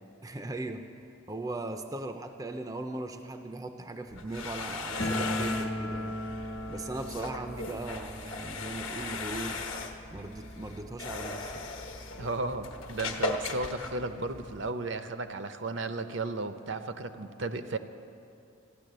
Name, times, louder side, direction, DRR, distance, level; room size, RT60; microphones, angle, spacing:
voice 1, 0.2-0.9 1.3-6.2 6.7-9.7 10.1-11.6, right 2 dB, 15° right, 6 dB, 0.4 m, -38 dB
sound 1, 4.1-14.7, left 3 dB, 80° left, 1.1 m, -38 dB
sound 2, 5.0-11.7 12.0-12.1 12.3-12.4 13.2-13.3 13.6-14.7, left 1 dB, 55° left, 1.2 m, -38 dB
voice 2, 12.2-17.8, right 3 dB, 60° right, 9 dB, 0.6 m, -34 dB
14.0 x 10.0 x 6.6 m, 2.6 s
head